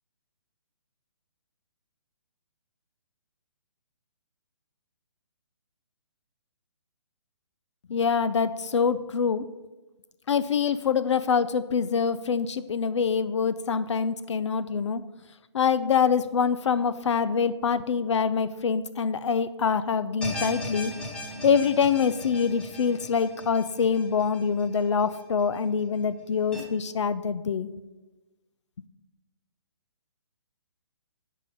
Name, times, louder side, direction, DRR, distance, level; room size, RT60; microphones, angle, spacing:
voice 1, 7.9-9.4 10.3-15.0 15.5-20.9 21.4-27.7, left 6 dB, 75° left, 13 dB, 0.4 m, -25 dB
sound 1, 20.2-25.4 25.8-25.9 26.5-26.6, left 1 dB, 5° left, 1.2 m, -38 dB
7.3 x 5.4 x 5.4 m, 1.1 s
hypercardioid pair, 150°, 15 cm